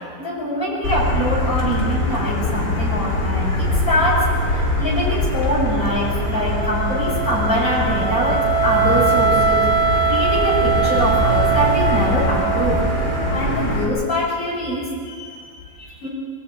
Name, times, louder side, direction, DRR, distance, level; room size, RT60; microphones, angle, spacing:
voice 1, 0.0-9.7 10.0-12.8 13.3-16.1, equal, 90° left, -6 dB, 6.9 m, -24 dB
Motor vehicle (road), 0.8-13.8, left 1 dB, 60° left, 4.2 m, -22 dB
Wind instrument woodwind instrument, 5.6-13.6, right 6 dB, 50° right, 2.2 m, -22 dB
23.5 x 13.5 x 9.0 m, 2.1 s
omnidirectional pair, 2.1 m